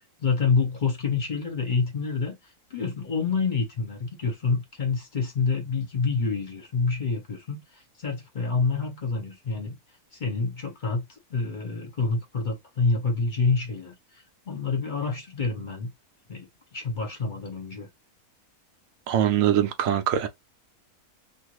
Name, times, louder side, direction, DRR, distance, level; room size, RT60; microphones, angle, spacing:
voice 1, 0.2-2.4 2.7-9.8 10.1-13.9 14.5-15.9 16.3-17.9, left 4 dB, 40° left, 0.9 m, -27 dB
voice 2, 19.1-20.3, right 10 dB, 70° right, 0.9 m, -22 dB
2.5 x 2.4 x 3.0 m
omnidirectional pair, 1.6 m